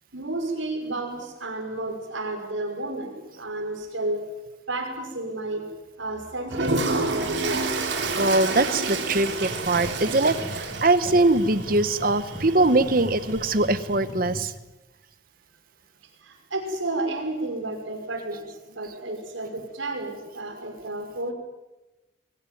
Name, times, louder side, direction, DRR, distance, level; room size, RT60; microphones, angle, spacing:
voice 1, 0.1-4.3 4.7-5.7 6.0-7.7 16.2-18.5 18.7-21.3, right 2 dB, 80° right, 3 dB, 6.1 m, -31 dB
Toilet flush, 6.5-14.0, right 3 dB, 65° right, 3.5 m, -30 dB
voice 2, 8.1-14.5, right 2 dB, 45° right, 12 dB, 1.2 m, -22 dB
sound 1, 9.4-14.5, left 1 dB, 20° left, 5.8 m, -39 dB
23.5 x 18.0 x 9.4 m, 1.1 s
head